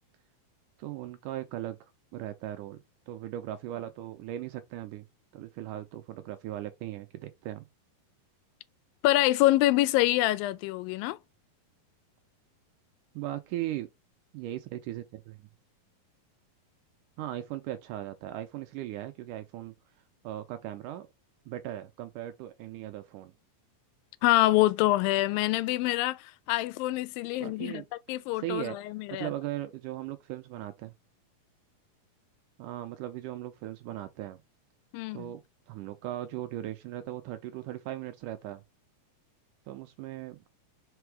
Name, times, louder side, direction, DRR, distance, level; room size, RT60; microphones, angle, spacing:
voice 1, 0.8-1.8 2.1-2.8 3.1-5.1 5.3-7.7 13.2-13.9 14.3-15.5 17.2-19.8 20.2-21.1 21.5-23.3 27.4-27.9 28.3-28.8 29.1-30.9 32.6-34.4 35.1-38.6 39.7-40.5, right 13 dB, 80° right, 2.0 m, -38 dB
voice 2, 9.0-11.2 24.2-27.8 28.1-29.3 34.9-35.3, left 17 dB, 85° left, 2.3 m, -26 dB
5.9 x 4.5 x 4.7 m
omnidirectional pair, 4.0 m